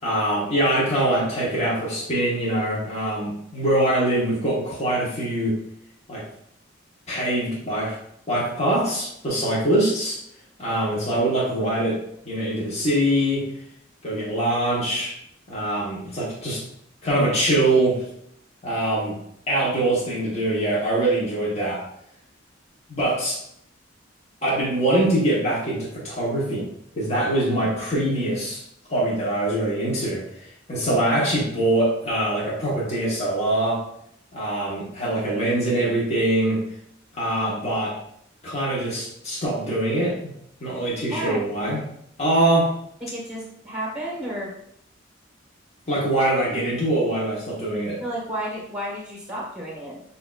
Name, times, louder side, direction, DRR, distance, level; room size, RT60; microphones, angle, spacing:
voice 1, 0.0-5.6 6.1-6.2 7.1-8.0 8.3-10.2 10.6-13.5 14.0-15.1 15.5-16.6 17.0-18.0 18.6-19.2 19.5-21.8 22.9-23.4 24.4-28.6 28.9-33.8 34.3-36.6 37.1-38.0 38.4-40.3 40.6-41.8 42.2-42.7 45.9-48.0, right 1 dB, 35° left, -6 dB, 1.2 m, -23 dB
voice 2, 41.1-41.4 43.0-44.5 48.0-50.0, right 1 dB, 5° right, -4 dB, 1.6 m, -32 dB
6.6 x 2.7 x 2.5 m, 0.71 s
head